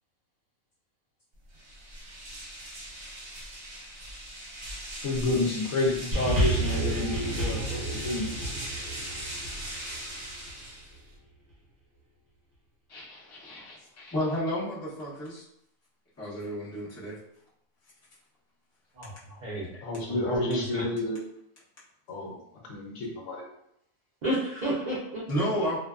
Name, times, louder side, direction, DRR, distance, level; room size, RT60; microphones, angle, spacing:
sound 1, 1.5-11.2, right 1 dB, 60° right, 1.0 m, -40 dB
voice 1, 5.0-8.6 19.8-21.2 22.1-23.4, left 2 dB, 70° left, -1 dB, 1.0 m, -30 dB
sound 2, 6.1-10.7 11.5-11.6, right 1 dB, 35° right, 0.9 m, -30 dB
voice 2, 12.9-15.4 16.2-17.2 19.3-19.4 19.7-19.8 25.3-25.8, equal, 20° left, -8 dB, 0.4 m, -32 dB
voice 3, 19.4-19.8 20.1-20.8 24.2-25.8, right 1 dB, 80° right, -6 dB, 0.4 m, -32 dB
2.6 x 2.2 x 2.3 m, 0.76 s
omnidirectional pair, 1.5 m